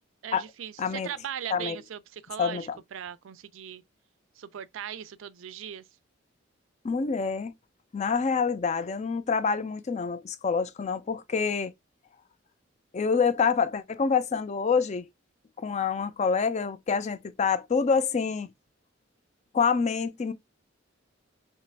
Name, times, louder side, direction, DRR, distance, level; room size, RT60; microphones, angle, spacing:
voice 1, 0.2-3.8 4.4-5.9, right 9 dB, 85° right, 0.4 m, -39 dB
voice 2, 0.8-1.1 1.5-1.8 2.4-2.8 6.8-7.5 7.9-11.7 12.9-15.0 15.6-18.5 19.5-20.3, left 5 dB, 35° left, 0.4 m, -26 dB
3.3 x 2.9 x 3.3 m
head